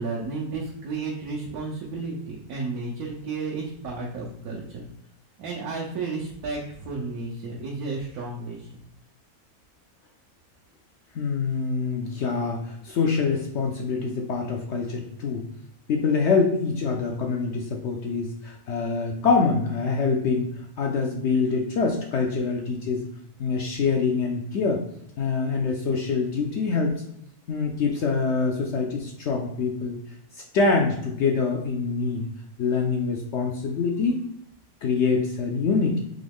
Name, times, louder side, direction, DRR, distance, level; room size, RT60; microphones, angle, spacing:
voice 1, 0.0-4.8 5.4-8.8, right 3 dB, 75° right, -2 dB, 1.2 m, -32 dB
voice 2, 11.1-15.4 15.9-20.5 20.8-23.1 23.4-24.8 25.2-26.9 27.5-29.9 30.4-32.2 32.6-34.2 34.8-36.0, left 4 dB, 65° left, 1 dB, 0.7 m, -25 dB
3.8 x 3.0 x 3.4 m, 0.74 s
omnidirectional pair, 1.6 m